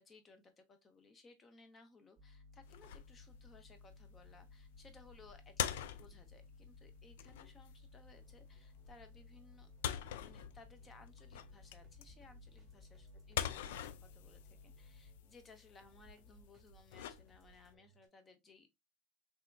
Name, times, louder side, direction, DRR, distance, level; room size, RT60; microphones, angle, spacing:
voice 1, 0.0-9.7 10.2-18.7, left 3 dB, 20° left, 0.7 m, -62 dB
sound 1, 2.2-15.2, left 3 dB, 30° right, 0.4 m, -59 dB
sound 2, 2.6-17.7, left 10 dB, 85° left, 0.3 m, -45 dB
sound 3, 7.9-18.1, right 4 dB, 10° right, 1.0 m, -68 dB
3.3 x 2.8 x 2.2 m
supercardioid pair, 150°, 0 cm